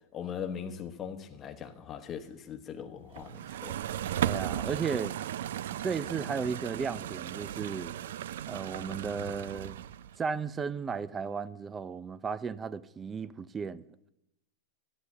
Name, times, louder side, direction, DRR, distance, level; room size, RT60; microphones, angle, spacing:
voice 1, 0.1-3.9, left 8 dB, 20° left, 1.1 m, -40 dB
sound 1, 3.2-10.2, right 11 dB, 70° right, 0.4 m, -36 dB
voice 2, 4.2-5.1 5.8-7.9 8.5-9.8 10.2-13.8, right 5 dB, 15° right, 0.4 m, -35 dB
12.0 x 9.7 x 8.1 m
supercardioid pair, 160°, 0 cm